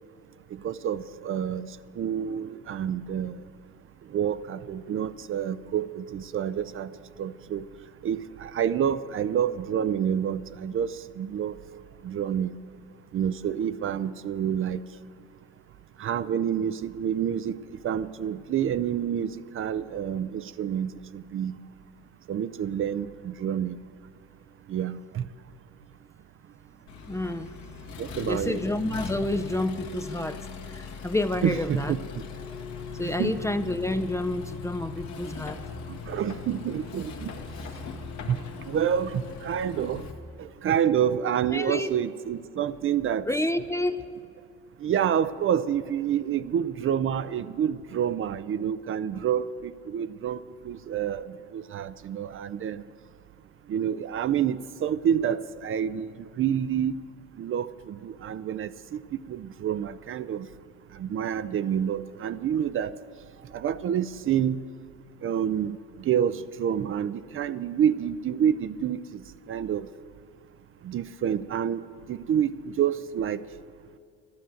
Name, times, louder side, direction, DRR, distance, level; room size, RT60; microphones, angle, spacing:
voice 1, 0.6-1.7 2.0-3.4 4.1-6.9 7.2-7.6 8.0-11.5 12.0-12.5 13.1-14.8 16.0-17.5 17.8-19.3 19.6-21.6 22.3-23.8 24.7-25.2 28.0-28.7 31.4-32.0 33.2-33.4 36.1-37.3 38.3-38.4 38.7-40.0 40.4-43.3 44.8-50.4 50.7-52.8 53.7-57.0 57.4-59.0 59.3-60.5 61.0-62.9 63.5-64.6 65.2-65.8 66.1-69.0 69.5-69.9 70.8-71.8 72.1-73.4, right 9 dB, 40° right, 14 dB, 0.5 m, -28 dB
Accelerating revving vroom, 26.9-40.1, left 5 dB, 60° left, 1.5 m, -39 dB
voice 2, 27.1-27.5 28.2-32.0 33.0-35.6 41.5-41.9 43.3-44.1, left 1 dB, 10° left, 8 dB, 0.4 m, -29 dB
12.0 x 10.5 x 7.7 m, 2.5 s
supercardioid pair, 90°, 32 cm